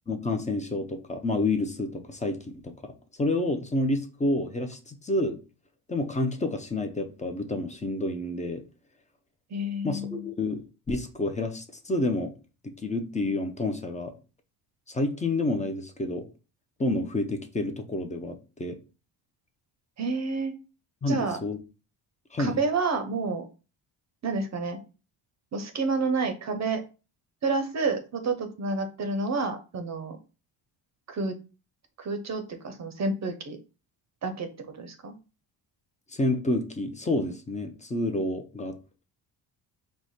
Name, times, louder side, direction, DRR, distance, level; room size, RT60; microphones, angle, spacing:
voice 1, 0.1-2.4 2.6-2.9 3.2-5.4 5.9-8.6 9.8-12.3 12.6-14.2 14.9-16.3 16.8-18.8 21.0-21.6 22.3-22.6 36.1-38.8, left 2 dB, 15° left, 0.4 m, -29 dB
voice 2, 9.5-10.3 20.0-20.5 21.1-21.4 22.4-23.4 24.2-24.8 25.5-26.8 27.4-30.2 31.1-31.3 32.0-33.6 34.2-35.1, right 3 dB, 40° right, 0.6 m, -29 dB
4.7 x 2.1 x 4.1 m
cardioid pair, 135°, 44 cm